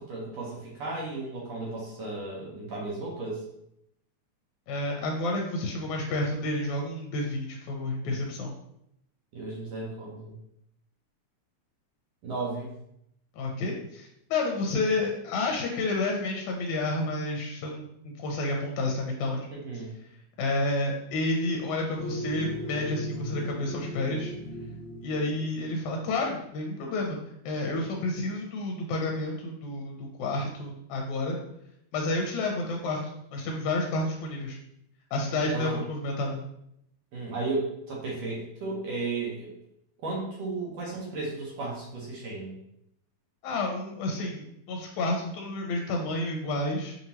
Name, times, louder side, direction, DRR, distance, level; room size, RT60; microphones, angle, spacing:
voice 1, 0.0-3.4 9.3-10.4 12.2-12.7 19.5-19.9 35.4-35.8 37.1-39.5 40.0-42.6, right 3 dB, 65° right, -4 dB, 1.8 m, -34 dB
voice 2, 4.7-8.5 13.4-19.5 20.4-24.3 25.0-27.2 27.5-31.4 31.9-33.0 33.3-34.6 35.1-36.4 43.4-47.0, left 2 dB, 80° left, 0 dB, 1.9 m, -30 dB
sound 1, 22.0-26.6, equal, 65° left, 2.0 m, -38 dB
5.4 x 2.8 x 2.9 m, 0.77 s
omnidirectional pair, 3.5 m